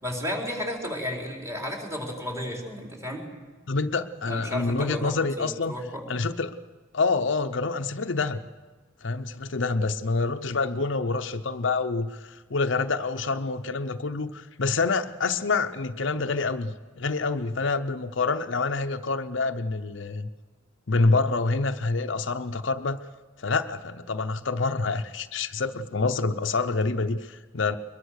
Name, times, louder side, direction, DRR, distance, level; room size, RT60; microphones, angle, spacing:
voice 1, 0.0-3.2 4.3-6.0, left 1 dB, 15° right, 0 dB, 4.2 m, -33 dB
voice 2, 3.7-5.7 6.1-6.5 6.9-8.4 9.0-20.3 20.9-23.0 23.4-27.8, left 3 dB, 70° left, 8 dB, 0.8 m, -27 dB
22.5 x 21.5 x 6.5 m, 1.3 s
head